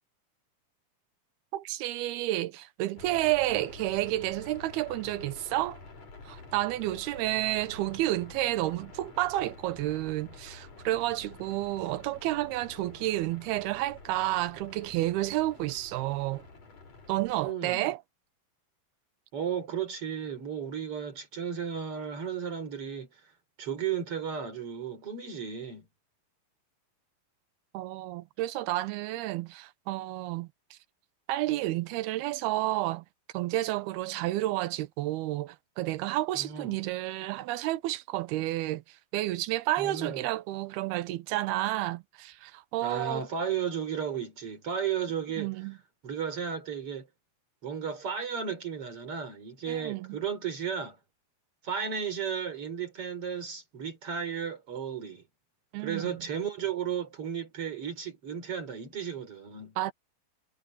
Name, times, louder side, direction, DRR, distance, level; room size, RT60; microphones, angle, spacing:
voice 1, 1.5-5.8 6.2-16.4 17.1-18.0 27.7-30.8 31.3-33.0 33.3-43.3 45.4-45.8 49.7-50.2 55.7-56.2 59.8-59.9, right 16 dB, 90° right, 2.8 m, -31 dB
sound 1, 3.0-17.5, left 3 dB, 45° left, 6.5 m, -49 dB
voice 2, 17.4-17.9 19.3-23.1 23.6-25.9 36.3-36.8 39.8-40.3 42.8-45.5 46.0-47.1 47.6-51.0 51.6-55.2 55.8-59.8, right 7 dB, 35° right, 5.0 m, -34 dB
omnidirectional pair, 4.4 m